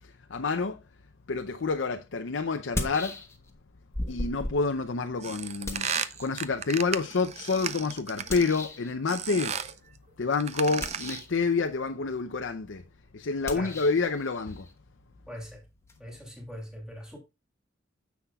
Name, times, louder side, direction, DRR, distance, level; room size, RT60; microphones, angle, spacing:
voice 1, 0.3-0.8 1.3-3.2 4.1-5.9 6.2-9.6 10.2-12.8 13.1-14.7, left 4 dB, 70° left, 0.6 m, -28 dB
sound 1, 1.6-1.7 2.6-3.6 3.9-6.8 8.3-8.9 10.7-11.4 13.4-16.0, left 1 dB, 15° left, 1.1 m, -38 dB
sound 2, 5.2-8.7 9.1-9.8 10.3-11.3, right 7 dB, 35° right, 0.5 m, -34 dB
voice 2, 15.3-15.6 16.0-17.2, equal, 5° right, 2.8 m, -41 dB
9.9 x 7.2 x 2.3 m
head